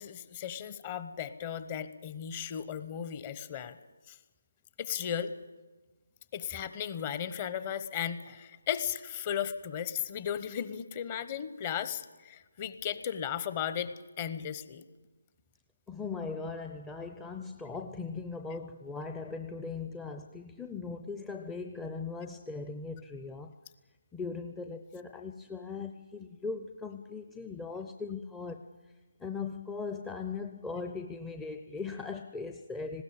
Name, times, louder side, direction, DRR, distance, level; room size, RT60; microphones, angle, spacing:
voice 1, 0.0-3.8 4.1-4.2 4.8-5.3 6.3-14.8, left 9 dB, 25° left, 13 dB, 1.1 m, -36 dB
voice 2, 15.9-23.5 24.1-28.6 29.2-33.0, left 4 dB, 5° left, 5 dB, 0.6 m, -39 dB
19.5 x 16.5 x 8.8 m, 1.2 s
figure-of-eight pair, 150°, 0 cm